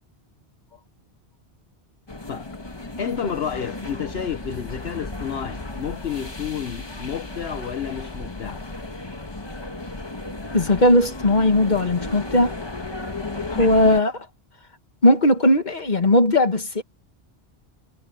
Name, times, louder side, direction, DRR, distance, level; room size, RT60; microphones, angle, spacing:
sound 1, 2.1-14.0, left 2 dB, 25° left, 1.6 m, -34 dB
voice 1, 3.0-8.6 13.6-13.7, left 8 dB, 65° left, 1.2 m, -30 dB
voice 2, 10.5-12.5 13.5-14.3 15.0-16.8, left 1 dB, 40° left, 1.9 m, -18 dB
omnidirectional pair, 1.1 m